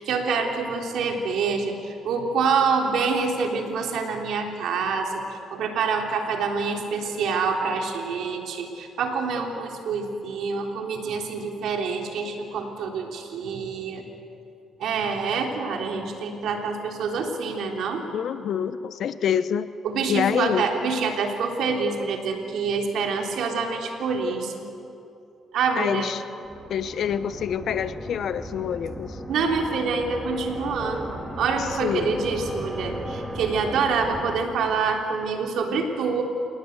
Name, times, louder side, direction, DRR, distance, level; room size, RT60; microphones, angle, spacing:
voice 1, 0.0-14.0 14.8-18.0 19.8-24.7 25.5-26.1 29.3-36.2, right 5 dB, 75° right, 2 dB, 3.5 m, -26 dB
voice 2, 18.1-19.7 20.1-20.7 25.8-26.2 26.7-29.2 31.6-32.1, left 8 dB, 65° left, 13 dB, 0.9 m, -26 dB
sound 1, 26.4-35.0, equal, 5° right, 3.5 m, -36 dB
28.0 x 18.5 x 8.1 m, 2.7 s
cardioid pair, 90°, 0 cm